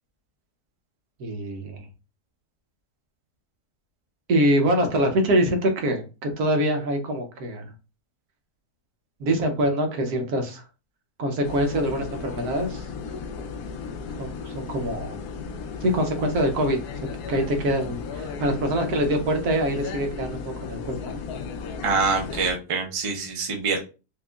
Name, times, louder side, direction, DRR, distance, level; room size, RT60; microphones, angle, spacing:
voice 1, 1.2-1.9 4.3-7.7 9.2-10.6 11.2-12.9 14.2-15.2 15.8-16.8 17.3-21.2, right 1 dB, 70° right, 4 dB, 1.3 m, -24 dB
sound 1, 11.4-22.5, left 5 dB, 80° left, 1.1 m, -35 dB
voice 2, 21.8-23.8, right 4 dB, 35° right, 1 dB, 0.5 m, -25 dB
4.6 x 2.4 x 2.3 m, 0.31 s
omnidirectional pair, 1.7 m